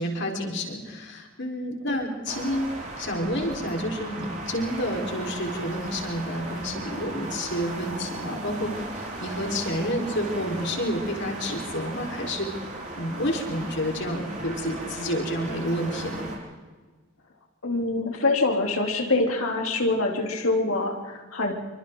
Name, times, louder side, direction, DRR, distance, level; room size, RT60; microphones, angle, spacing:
voice 1, 0.0-2.7 3.0-12.5 12.9-16.3, equal, 55° left, 1 dB, 4.5 m, -29 dB
sound 1, 2.3-16.4, right 2 dB, 35° right, 6.4 m, -36 dB
voice 2, 17.6-21.5, left 2 dB, 80° left, 1 dB, 3.4 m, -25 dB
28.0 x 25.0 x 4.0 m, 1.3 s
head